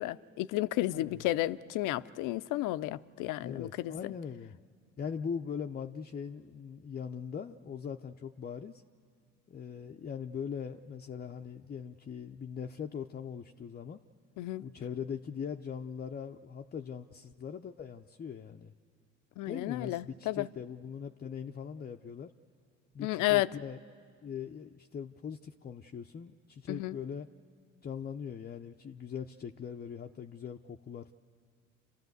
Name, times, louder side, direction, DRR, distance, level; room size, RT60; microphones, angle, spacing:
voice 1, 0.0-4.0 14.4-14.6 19.4-20.5 23.0-23.5 26.7-27.0, left 16 dB, 75° left, 0.6 m, -32 dB
voice 2, 0.9-1.2 3.4-4.6 5.0-8.8 9.5-14.0 14.6-18.7 19.5-22.3 22.9-23.8 24.2-27.3 27.8-31.1, left 7 dB, 30° left, 0.6 m, -41 dB
28.0 x 13.0 x 8.1 m
supercardioid pair, 70°, 31 cm